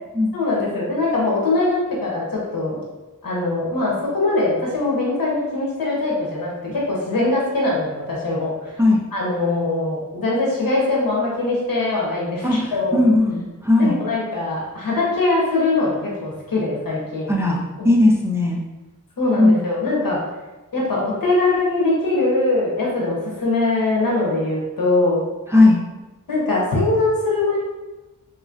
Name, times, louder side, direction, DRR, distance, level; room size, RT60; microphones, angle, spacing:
voice 1, 0.3-2.8 3.2-8.8 9.1-13.0 13.8-17.3 17.8-17.9 19.2-20.2 20.7-25.2 26.3-27.6, left 2 dB, 80° left, -4 dB, 1.2 m, -22 dB
voice 2, 12.4-13.9 17.3-18.6 19.4-19.6 25.5-25.8, left 2 dB, 10° right, -2 dB, 0.5 m, -17 dB
3.6 x 3.0 x 2.5 m, 1.1 s
wide cardioid pair, 90°, 34 cm